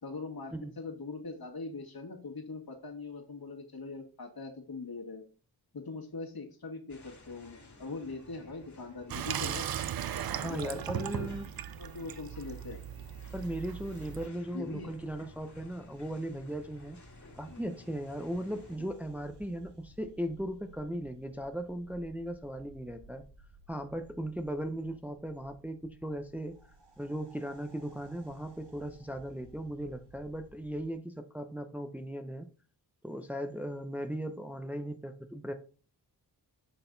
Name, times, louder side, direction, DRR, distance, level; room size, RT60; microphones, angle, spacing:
voice 1, 0.0-5.2 5.7-9.7 10.4-11.3 11.8-12.8 14.5-14.9 17.5-17.6 18.8-18.9, left 3 dB, 60° left, 2.0 m, -42 dB
sound 1, 6.9-18.8, left 2 dB, 40° left, 2.0 m, -55 dB
Water tap faucet / Sink (filling or washing), 9.1-14.3, right 10 dB, 60° right, 0.5 m, -37 dB
voice 2, 10.3-11.5 13.3-17.0 17.4-23.2 23.7-26.6 27.0-32.5 33.0-35.5, right 1 dB, 5° right, 0.7 m, -37 dB
sound 2, 14.7-30.9, right 2 dB, 75° right, 1.4 m, -58 dB
7.9 x 4.1 x 3.9 m
cardioid pair, 60°, 42 cm